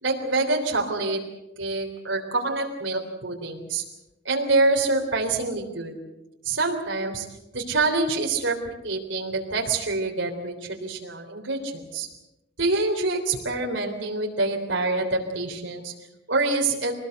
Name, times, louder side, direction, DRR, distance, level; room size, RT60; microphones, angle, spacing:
voice 1, 0.0-1.2 1.6-3.8 4.3-5.9 6.4-7.3 7.5-12.1 12.6-15.9 16.3-16.9, right 3 dB, 80° right, 1 dB, 3.5 m, -26 dB
24.5 x 19.5 x 8.0 m, 0.96 s
head